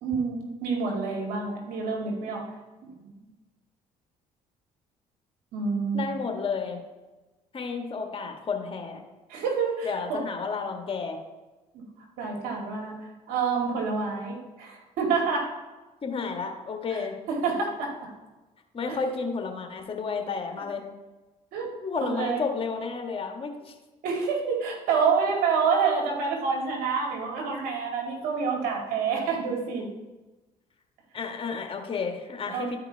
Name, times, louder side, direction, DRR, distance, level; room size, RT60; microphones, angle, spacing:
voice 1, 0.0-2.5 2.8-3.1 5.5-6.2 9.3-10.2 11.7-11.8 12.2-13.0 13.3-15.5 16.9-17.0 17.3-17.9 18.9-19.0 21.5-21.7 22.0-22.4 24.0-29.9 32.5-32.8, right 5 dB, 80° right, 0 dB, 2.0 m, -28 dB
voice 2, 5.9-6.8 7.5-9.0 9.8-11.2 16.0-17.1 18.7-20.8 21.8-23.7 31.1-32.8, left 5 dB, 40° left, 3 dB, 1.5 m, -31 dB
12.0 x 4.9 x 3.4 m, 1.1 s
supercardioid pair, 75°, 15 cm